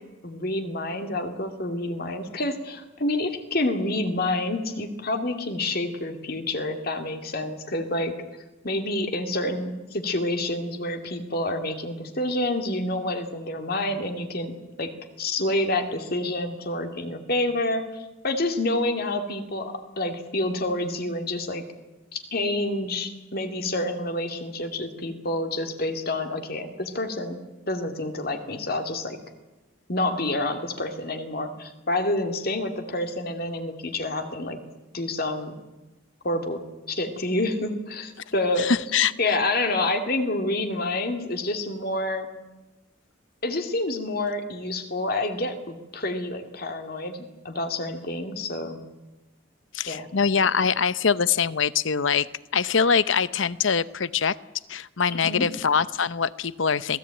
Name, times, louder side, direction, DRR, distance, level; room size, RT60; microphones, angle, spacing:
voice 1, 0.2-8.1 8.6-14.9 15.2-21.6 22.1-27.4 27.7-29.2 29.9-34.6 34.9-35.6 36.2-36.6 36.9-42.3 43.4-48.8 49.9-50.1 55.1-55.5, left 2 dB, 45° left, 6 dB, 2.5 m, -28 dB
voice 2, 38.6-39.1 49.7-54.4 54.7-57.0, left 6 dB, 65° left, 17 dB, 0.8 m, -23 dB
26.5 x 18.5 x 9.0 m, 1.1 s
head